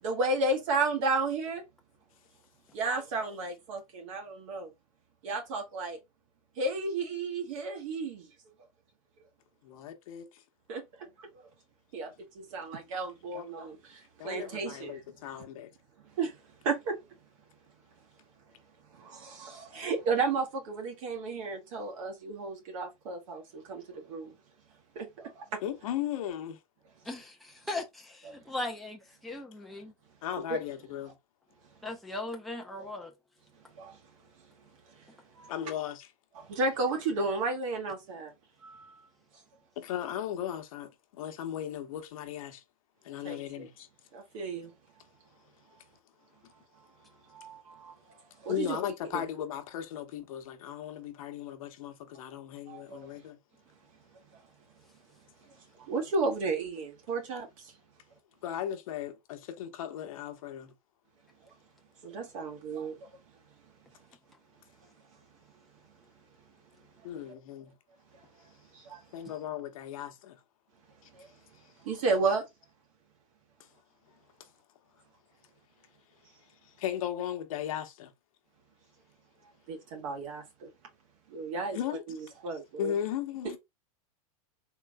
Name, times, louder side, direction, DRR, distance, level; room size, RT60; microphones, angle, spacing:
voice 1, 0.0-1.6 2.7-4.7 5.2-6.0 6.6-8.3 10.7-11.5 11.9-15.0 16.1-16.4 16.6-17.0 18.9-24.4 25.0-25.6 28.2-28.4 30.5-30.6 32.8-32.9 33.7-34.0 34.9-35.0 35.3-35.5 36.3-38.3 38.6-39.0 43.2-43.7 44.1-44.7 47.3-48.8 49.1-49.2 52.7-53.1 55.8-57.7 62.0-63.1 68.7-69.0 71.1-71.3 71.8-72.5 79.7-80.7 81.3-81.8 82.1-83.0, right 3 dB, 60° right, 2.0 m, -33 dB
voice 2, 9.6-10.4 13.3-13.5 14.2-15.7 25.6-26.6 30.2-31.2 35.5-36.1 39.8-42.6 43.0-43.9 48.5-53.4 58.4-60.7 67.0-67.7 69.1-70.4 71.0-71.1 73.6-73.7 74.4-74.5 76.8-78.1 81.7-82.0 82.8-83.6, left 10 dB, 70° left, 1.0 m, -36 dB
voice 3, 27.1-29.9 31.8-33.1, left 2 dB, ahead, 0.7 m, -38 dB
3.8 x 3.7 x 2.2 m
supercardioid pair, 150°, 19 cm